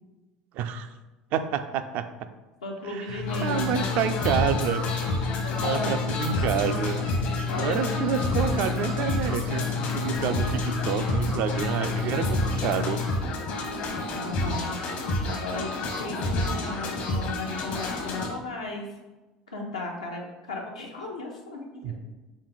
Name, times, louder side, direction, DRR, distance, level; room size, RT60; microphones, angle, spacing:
voice 1, 0.5-0.9 1.3-2.1 3.0-4.9 5.6-7.0 7.6-13.0 21.8-21.9, right 8 dB, 55° right, 9 dB, 0.3 m, -28 dB
voice 2, 2.6-3.9 4.2-4.3 5.4-6.0 7.5-8.7 13.9-14.8 15.2-15.7 16.0-18.9 19.5-22.0, left 2 dB, 90° left, -1 dB, 0.7 m, -35 dB
sound 1, 3.1-13.1, left 6 dB, 75° right, 0.7 m, -31 dB
sound 2, 3.3-18.3, left 1 dB, 55° left, 0.9 m, -30 dB
3.4 x 3.1 x 3.9 m, 1.1 s
hypercardioid pair, 75°, 3 cm